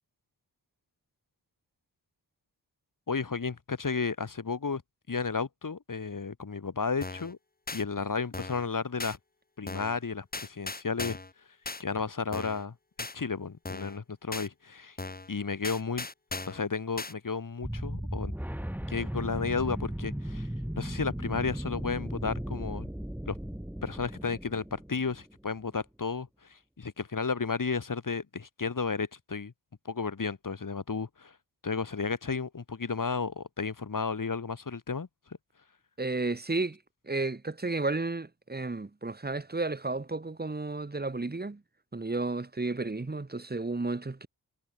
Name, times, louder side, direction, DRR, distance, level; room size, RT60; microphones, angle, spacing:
voice 1, 3.1-4.8 5.1-7.4 7.7-9.2 9.6-11.2 11.8-12.7 13.1-15.0 15.3-16.1 16.5-18.3 18.9-20.5 20.8-22.9 23.3-23.4 23.8-29.5 29.9-31.3 31.6-35.1, left 5 dB, 50° left, 4.4 m, -33 dB
sound 1, 7.0-7.3 7.7-7.8 8.3-8.7 9.0-9.2 9.7-10.0 10.3-11.3 11.6-11.8 12.3-12.6 13.0-13.1 13.6-14.0 14.3-14.5 15.0-15.3 15.6-16.6 17.0-17.1, left 3 dB, 20° left, 1.6 m, -38 dB
sound 2, 17.6-25.3, equal, 5° right, 2.4 m, -36 dB
voice 2, 36.0-36.8 37.0-41.6 41.9-44.3, right 3 dB, 25° right, 2.0 m, -32 dB
cardioid pair, 75°, 41 cm